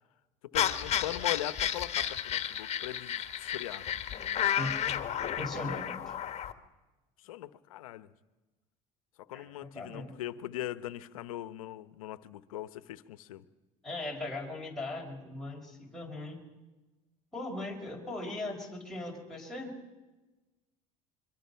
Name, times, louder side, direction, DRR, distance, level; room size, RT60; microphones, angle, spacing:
voice 1, 0.4-3.9 7.2-8.1 9.2-13.4, left 14 dB, 85° left, 1.0 m, -40 dB
sound 1, 0.5-6.5, left 9 dB, 40° left, 1.7 m, -32 dB
voice 2, 4.6-6.2 9.3-10.1 13.8-16.4 17.3-19.8, left 2 dB, ahead, 5.2 m, -39 dB
26.0 x 23.5 x 5.8 m
hypercardioid pair, 85°, 17 cm